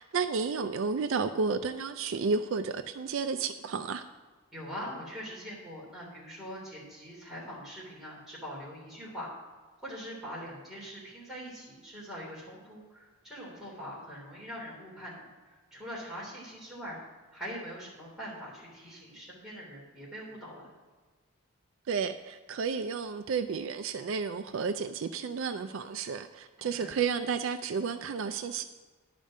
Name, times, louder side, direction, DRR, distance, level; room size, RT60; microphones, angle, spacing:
voice 1, 0.0-4.0 21.9-28.6, right 5 dB, 60° right, 10 dB, 0.4 m, -32 dB
voice 2, 4.5-9.3 9.8-17.0 17.3-20.7 26.6-27.0, equal, ahead, -7 dB, 3.3 m, -43 dB
10.5 x 5.1 x 6.4 m, 1.4 s
head